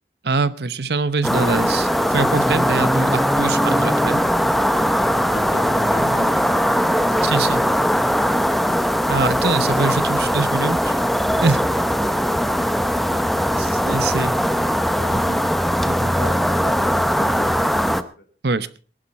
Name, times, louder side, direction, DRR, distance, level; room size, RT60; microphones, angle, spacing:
voice 1, 0.2-4.2 6.1-6.3 7.2-7.6 9.1-11.0 11.4-11.6 13.6-14.3 15.1-15.4 15.8-16.1 18.4-18.8, right 3 dB, 65° right, 16 dB, 0.9 m, -23 dB
sound 1, 1.2-18.0, equal, ahead, 0.7 m, -20 dB
voice 2, 16.1-18.2, left 1 dB, 75° left, 5 dB, 3.2 m, -41 dB
19.5 x 11.0 x 4.3 m, 0.37 s
head